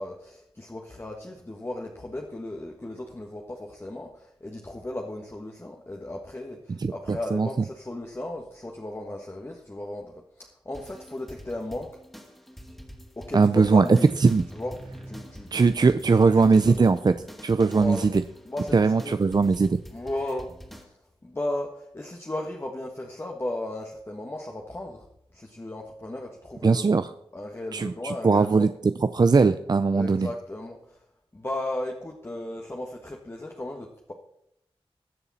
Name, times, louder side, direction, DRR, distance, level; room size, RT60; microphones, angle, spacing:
voice 1, 0.0-11.9 13.2-14.1 14.5-14.7 15.1-15.8 16.2-16.9 17.7-18.1 18.4-19.2 19.9-21.0 21.2-25.0 25.3-26.8 27.3-28.7 29.9-31.0 31.3-34.1, left 1 dB, 25° left, 0 dB, 1.5 m, -35 dB
voice 2, 6.8-7.5 13.3-14.4 15.5-17.1 17.4-18.2 18.7-19.7 26.6-27.1 27.7-28.7 29.1-30.3, right 4 dB, 45° right, 11 dB, 0.5 m, -20 dB
sound 1, 10.7-20.8, equal, ahead, 2.4 m, -45 dB
20.5 x 7.0 x 4.2 m, 0.78 s
wide cardioid pair, 95°, 10 cm